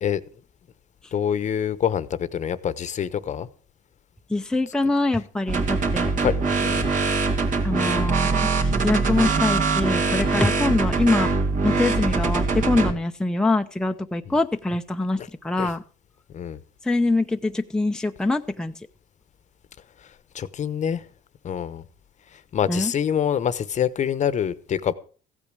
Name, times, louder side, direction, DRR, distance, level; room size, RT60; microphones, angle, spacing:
voice 1, 1.1-3.5 6.2-6.9 10.6-10.8 14.3-14.4 15.2-15.3 15.6-15.7 16.3-16.6 20.0-21.0 21.4-21.8 22.3-24.9, left 8 dB, 45° left, 1.0 m, -26 dB
voice 2, 4.3-6.1 7.6-11.3 11.6-15.8 16.8-18.7 22.7-22.9, left 2 dB, 5° left, 0.7 m, -24 dB
sound 1, 5.5-12.9, right 4 dB, 50° right, 2.7 m, -23 dB
15.5 x 8.8 x 6.2 m
cardioid pair, 110°, 17 cm